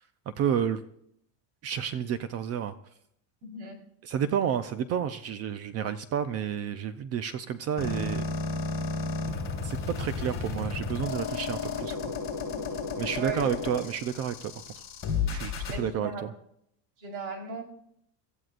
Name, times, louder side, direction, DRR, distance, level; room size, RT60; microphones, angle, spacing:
voice 1, 0.3-0.8 1.6-2.7 4.0-8.2 9.6-12.1 13.0-14.8 15.3-16.3, right 8 dB, 35° right, 12 dB, 0.5 m, -31 dB
voice 2, 3.4-3.8 12.6-13.5 15.7-16.2 17.0-17.6, right 5 dB, 60° right, 2 dB, 4.2 m, -37 dB
sound 1, 7.8-15.8, left 4 dB, 25° left, 7.5 m, -33 dB
25.0 x 14.0 x 2.5 m, 0.71 s
cardioid pair, 155°, 47 cm